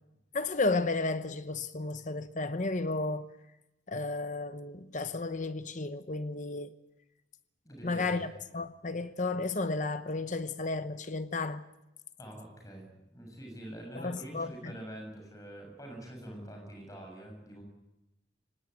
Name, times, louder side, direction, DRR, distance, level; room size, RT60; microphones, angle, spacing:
voice 1, 0.3-3.3 3.9-6.7 7.8-11.6 14.0-14.7, left 3 dB, 40° left, 0.9 m, -33 dB
voice 2, 7.6-8.3 12.2-17.6, right 1 dB, 15° left, 7.2 m, -45 dB
24.5 x 18.5 x 9.4 m
head